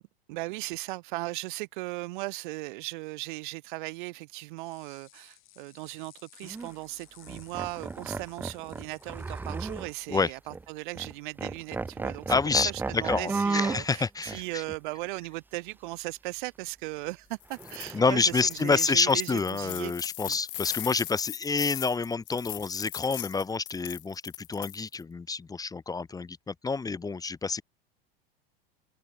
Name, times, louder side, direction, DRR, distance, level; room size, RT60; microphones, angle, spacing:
voice 1, 0.3-19.9 20.3-20.4, right 22 dB, 55° right, 0.5 m, -37 dB
sound 1, 4.6-10.1, left 16 dB, 45° left, 5.8 m, -58 dB
sound 2, 6.4-6.7 7.3-10.2 10.5-10.6 10.9-11.1 11.4-13.9 14.3-14.4 17.6-18.5, right 3 dB, 5° right, 0.4 m, -34 dB
voice 2, 12.3-14.6 17.9-27.6, left 4 dB, 10° left, 0.8 m, -28 dB
sound 3, 17.4-17.9 18.3-25.0, left 18 dB, 65° left, 0.7 m, -39 dB
open air
hypercardioid pair, 85°, 30 cm